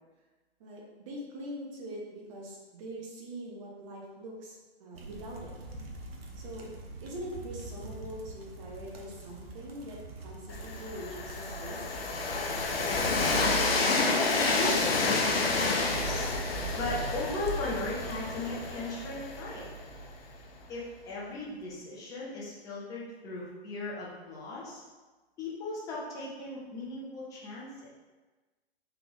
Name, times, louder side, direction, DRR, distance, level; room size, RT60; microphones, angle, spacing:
voice 1, 0.6-5.5 6.3-6.7 7.0-11.8, right 1 dB, 30° right, -2 dB, 0.9 m, -43 dB
sound 1, 4.9-18.8, right 2 dB, 65° right, 0.8 m, -47 dB
Train, 10.5-20.3, left 3 dB, 65° left, 0.7 m, -29 dB
voice 2, 14.3-16.3 16.8-19.7 20.7-24.8 25.4-27.9, left 2 dB, 10° left, -5 dB, 0.5 m, -37 dB
3.5 x 3.3 x 3.4 m, 1.2 s
figure-of-eight pair, 120°, 32 cm